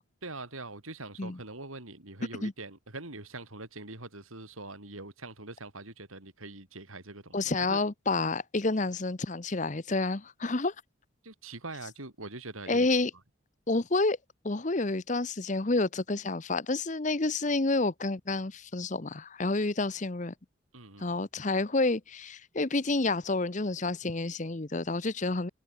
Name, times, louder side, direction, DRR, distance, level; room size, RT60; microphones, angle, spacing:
voice 1, 0.2-7.8 11.2-12.9 20.7-21.1, right 2 dB, 90° right, 5.9 m, -43 dB
voice 2, 7.3-10.7 12.7-13.1 13.7-14.2 14.4-20.3 21.0-25.5, left 3 dB, 35° left, 0.9 m, -29 dB
head